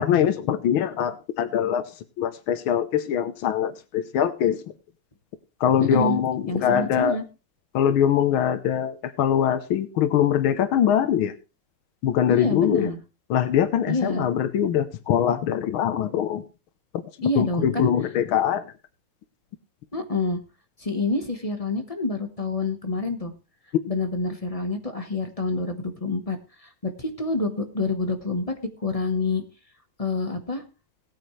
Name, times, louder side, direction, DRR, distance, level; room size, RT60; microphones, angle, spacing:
voice 1, 0.0-1.8 2.2-4.6 5.6-7.2 7.7-11.3 12.0-12.9 13.3-16.4 17.4-18.6, left 9 dB, 90° left, 10 dB, 1.7 m, -23 dB
voice 2, 5.8-6.2 6.5-7.2 12.3-13.0 13.9-14.3 17.2-17.9 19.9-20.4 20.8-23.3 23.9-29.4 30.0-30.6, left 2 dB, 20° left, 6 dB, 1.1 m, -27 dB
18.5 x 9.0 x 3.2 m, 0.31 s
omnidirectional pair, 2.2 m